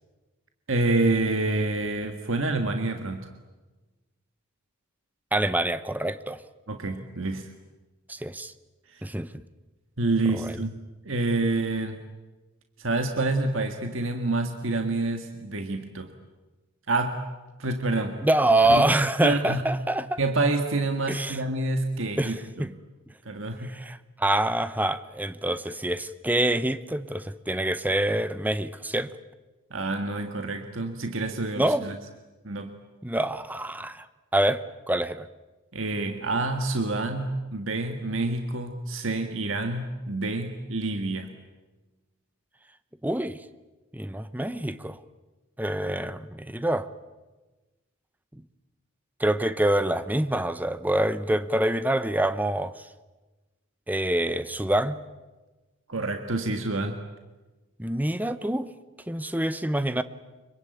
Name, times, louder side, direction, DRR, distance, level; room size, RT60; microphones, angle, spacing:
voice 1, 0.7-3.3 6.7-7.5 8.9-9.0 10.0-10.8 11.1-12.0 12.8-16.1 16.9-17.2 17.6-18.2 18.7-18.8 19.2-19.6 20.2-22.7 23.3-23.7 29.7-32.0 32.4-32.7 35.7-41.3 55.9-57.0, right 2 dB, 60° right, 5 dB, 1.8 m, -27 dB
voice 2, 5.3-6.4 8.1-8.5 9.0-9.3 10.3-10.5 18.2-20.2 21.1-21.4 22.2-22.7 23.6-29.1 31.6-31.8 33.0-34.1 34.3-35.3 43.0-43.4 43.9-45.0 45.6-46.9 49.2-52.9 53.9-55.0 57.8-58.7 59.1-60.0, right 1 dB, 10° right, 13 dB, 0.8 m, -26 dB
25.5 x 23.0 x 9.3 m, 1.2 s
head